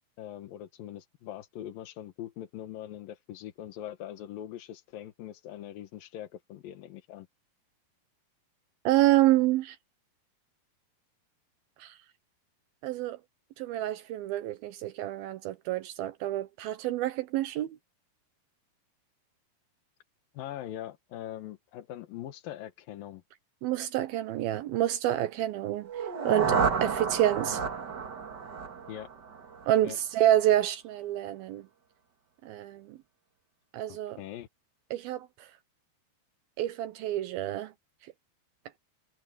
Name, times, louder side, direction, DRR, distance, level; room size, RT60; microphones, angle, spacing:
voice 1, 0.2-7.3 20.3-23.2 28.9-29.1 29.8-30.0 33.9-34.5, left 12 dB, 70° left, 2.8 m, -42 dB
voice 2, 8.9-9.8 11.8-12.0 12.8-13.2 13.6-17.8 23.6-27.6 29.7-31.7 32.4-33.0 33.7-34.2 34.9-35.5 36.6-37.7, right 13 dB, 75° right, 2.5 m, -28 dB
sound 1, 25.8-29.8, right 5 dB, 45° right, 1.4 m, -31 dB
omnidirectional pair, 4.6 m